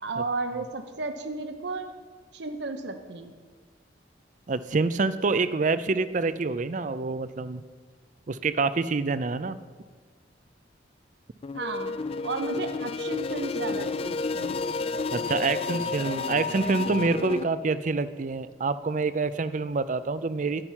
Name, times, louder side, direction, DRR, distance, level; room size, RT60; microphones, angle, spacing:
voice 1, 0.0-1.9 2.3-3.4 11.5-12.0 12.2-14.6, right 3 dB, 65° right, 7 dB, 0.9 m, -33 dB
voice 2, 4.5-7.6 8.3-9.6 15.1-20.6, right 3 dB, 40° right, 14 dB, 0.4 m, -27 dB
sound 1, 11.4-17.4, left 4 dB, 30° left, 0.3 m, -31 dB
11.5 x 8.9 x 5.7 m, 1.6 s
head